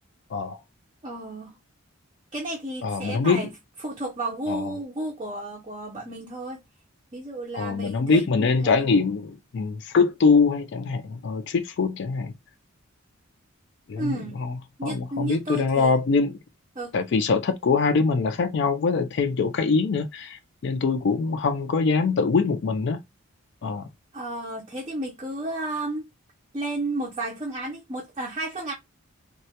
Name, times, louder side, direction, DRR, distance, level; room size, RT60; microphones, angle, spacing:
voice 1, 0.3-0.6 2.8-3.5 4.5-4.7 7.5-12.3 13.9-16.4 16.9-23.0 23.6-23.9, left 4 dB, 55° left, 0.3 m, -23 dB
voice 2, 1.0-1.6 2.3-3.5 3.8-6.6 7.1-8.8 14.0-14.4 14.8-15.9 16.8-16.9 24.1-26.1 26.5-28.7, right 2 dB, 25° right, 0.4 m, -32 dB
2.2 x 2.1 x 2.7 m
head